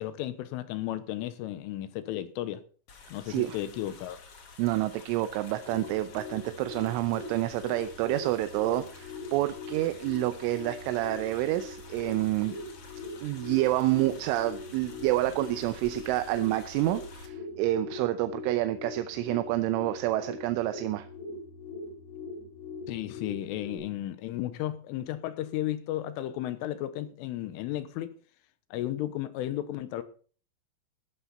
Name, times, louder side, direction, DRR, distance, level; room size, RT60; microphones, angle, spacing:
voice 1, 0.0-2.6 3.1-4.2 22.9-28.1 28.7-30.0, left 13 dB, 80° left, 3.4 m, -34 dB
sound 1, 2.9-17.3, left 4 dB, 65° left, 1.4 m, -50 dB
voice 2, 3.3-3.6 4.6-12.6 13.2-21.1, right 15 dB, 80° right, 3.0 m, -28 dB
sound 2, 5.4-23.8, left 3 dB, 35° left, 5.3 m, -42 dB
15.0 x 12.0 x 4.2 m
omnidirectional pair, 6.0 m